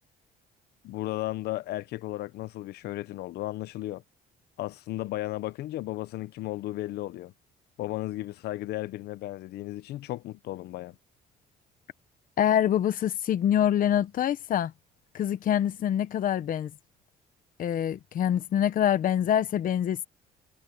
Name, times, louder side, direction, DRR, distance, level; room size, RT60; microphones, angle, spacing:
voice 1, 0.8-4.0 4.6-7.3 7.8-10.9, left 16 dB, 75° left, 0.8 m, -34 dB
voice 2, 12.4-14.7 15.1-16.7 17.6-20.0, left 10 dB, 55° left, 1.2 m, -25 dB
cardioid pair, 110°, 17 cm